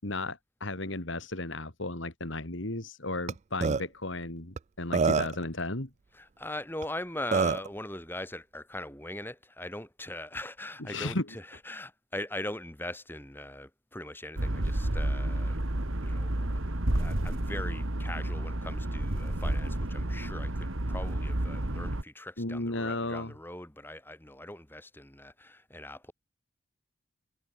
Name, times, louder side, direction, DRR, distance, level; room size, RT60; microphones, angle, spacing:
voice 1, 0.0-5.9 10.9-11.2 22.4-23.3, left 2 dB, 65° left, 2.9 m, -34 dB
Burping eructation, 3.3-3.4 3.6-3.8 4.6-4.7 4.9-5.4 6.8-6.9 7.3-7.7, right 5 dB, 35° right, 0.3 m, -25 dB
voice 2, 6.1-26.1, left 1 dB, 10° left, 6.8 m, -41 dB
sound 1, 14.4-22.0, right 1 dB, 80° right, 2.2 m, -31 dB
head